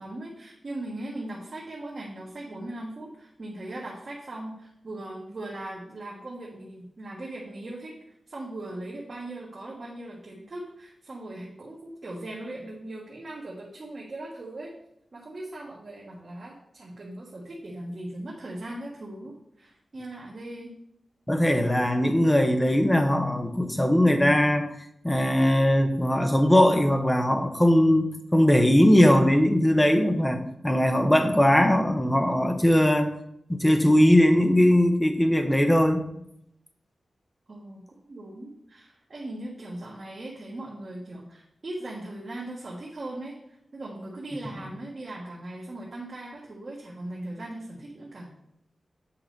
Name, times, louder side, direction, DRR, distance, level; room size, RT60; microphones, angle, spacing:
voice 1, 0.0-7.9 8.3-14.7 15.1-20.7 37.5-48.3, right 1 dB, 40° right, -4 dB, 1.4 m, -39 dB
voice 2, 21.3-24.7 25.0-33.1 33.5-36.1, left 1 dB, 10° left, 6 dB, 0.8 m, -20 dB
8.4 x 4.9 x 5.1 m, 0.76 s
wide cardioid pair, 180°, 0 cm